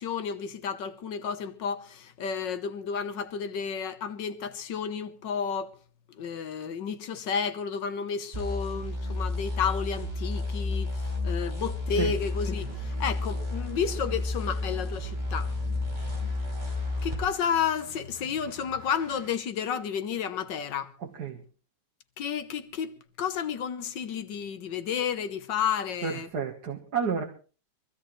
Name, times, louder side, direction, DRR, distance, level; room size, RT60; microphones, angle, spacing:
voice 1, 0.0-5.7 6.2-15.5 17.0-20.9 22.2-26.3, left 7 dB, 85° left, 1.8 m, -31 dB
sound 1, 8.3-17.2, left 2 dB, 25° right, 4.4 m, -31 dB
sound 2, 12.2-19.3, equal, 45° right, 7.1 m, -48 dB
voice 2, 26.0-27.2, right 6 dB, 65° right, 2.0 m, -30 dB
23.5 x 15.5 x 3.2 m
omnidirectional pair, 1.9 m